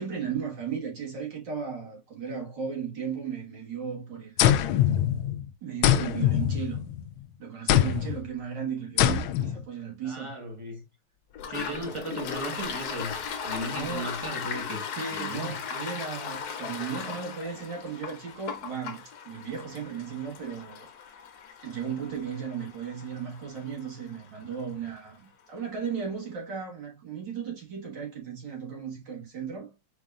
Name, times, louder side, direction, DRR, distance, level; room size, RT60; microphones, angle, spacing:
voice 1, 0.0-4.8 5.6-6.8 7.4-10.3 11.9-12.0 13.7-14.2 14.9-20.9 21.6-29.7, right 6 dB, 65° right, 2.3 m, -36 dB
sound 1, 4.4-5.4 5.8-7.1 7.7-8.2 9.0-9.6, left 11 dB, 85° left, 1.4 m, -23 dB
voice 2, 10.0-10.8 11.5-13.1 13.4-14.8 15.1-15.6, right 1 dB, 20° right, 1.0 m, -36 dB
Toilet flush, 11.3-24.7, left 6 dB, 60° left, 1.2 m, -38 dB
4.7 x 4.7 x 2.4 m
omnidirectional pair, 2.1 m